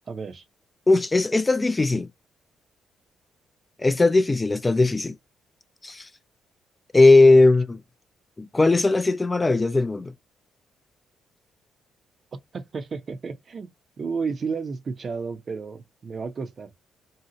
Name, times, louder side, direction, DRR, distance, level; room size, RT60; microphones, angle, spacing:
voice 1, 0.1-0.4 12.5-13.7 14.0-16.7, right 5 dB, 45° right, 0.6 m, -32 dB
voice 2, 0.9-2.1 3.8-5.1 5.8-6.1 6.9-7.8 8.4-10.1, left 2 dB, 20° left, 0.3 m, -18 dB
2.7 x 2.0 x 3.8 m
cardioid pair, 90°, 0 cm